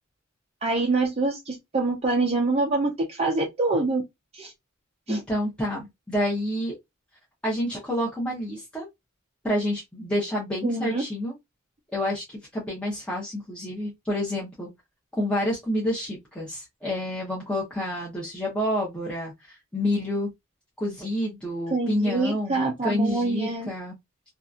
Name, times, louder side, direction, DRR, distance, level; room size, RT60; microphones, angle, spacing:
voice 1, 0.6-4.0 4.3-4.5 5.1-5.2 10.6-11.0 21.7-23.7, right 3 dB, 30° right, 0.6 m, -25 dB
voice 2, 5.1-6.7 7.4-8.9 9.4-11.3 11.9-14.7 15.2-20.3 20.8-23.9, left 1 dB, 5° left, 0.8 m, -28 dB
2.8 x 2.5 x 2.3 m
head